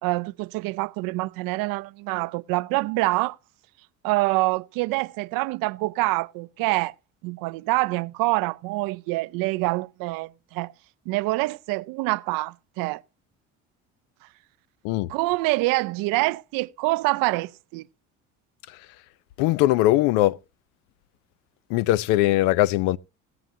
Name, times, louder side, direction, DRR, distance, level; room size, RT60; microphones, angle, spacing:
voice 1, 0.0-3.4 4.0-6.9 7.2-10.7 11.1-13.0 15.1-17.9, right 22 dB, 75° right, 0.5 m, -26 dB
voice 2, 19.4-20.4 21.7-23.0, left 16 dB, 80° left, 0.5 m, -20 dB
19.0 x 7.7 x 2.6 m
supercardioid pair, 80°, 34 cm